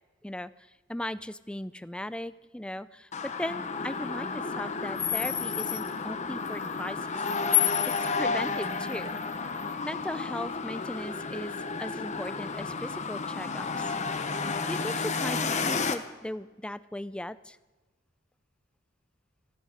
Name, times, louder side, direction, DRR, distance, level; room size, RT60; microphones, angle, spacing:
voice 1, 0.9-7.2 7.5-7.7 8.2-9.2 9.8-11.5 11.8-13.9 14.7-17.6, left 1 dB, 5° left, 15 dB, 0.4 m, -37 dB
sound 1, 3.1-16.0, left 5 dB, 35° left, 1.0 m, -31 dB
18.0 x 14.0 x 5.0 m, 1.2 s
head